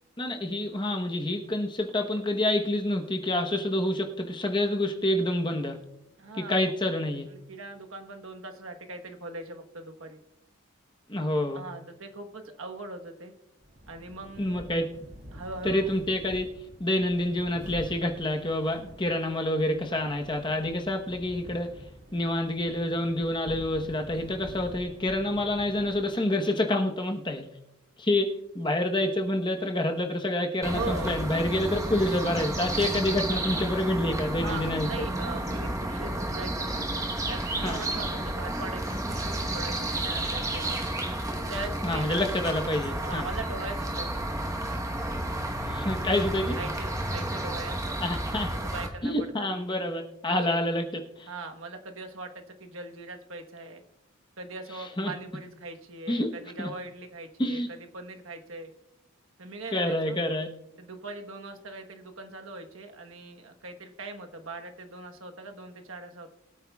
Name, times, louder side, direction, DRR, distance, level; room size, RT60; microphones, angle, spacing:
voice 1, 0.2-5.8 6.4-7.3 11.1-11.6 14.4-14.8 15.6-16.5 16.8-21.7 22.1-27.5 28.0-34.9 37.6-37.8 41.8-43.3 45.6-46.6 48.0-48.5 49.0-50.8 51.2-51.3 55.0-55.1 56.1-56.3 56.6-56.7 57.4-57.7 59.7-60.5, left 1 dB, 20° left, 3 dB, 1.0 m, -28 dB
voice 2, 6.2-6.6 7.3-10.2 11.5-13.3 13.9-14.7 15.3-15.9 30.7-31.1 33.5-33.7 34.3-36.8 37.3-40.8 41.4-42.2 42.9-44.3 46.5-48.2 48.5-49.5 50.3-50.6 51.3-53.8 54.4-57.6 57.9-58.7 59.4-60.2 60.8-66.3, right 3 dB, 70° right, 4 dB, 1.2 m, -40 dB
sound 1, 13.6-26.3, equal, 55° right, 2.4 m, -47 dB
sound 2, 30.6-48.9, right 1 dB, 15° right, 1.1 m, -31 dB
22.0 x 9.0 x 2.3 m, 0.86 s
head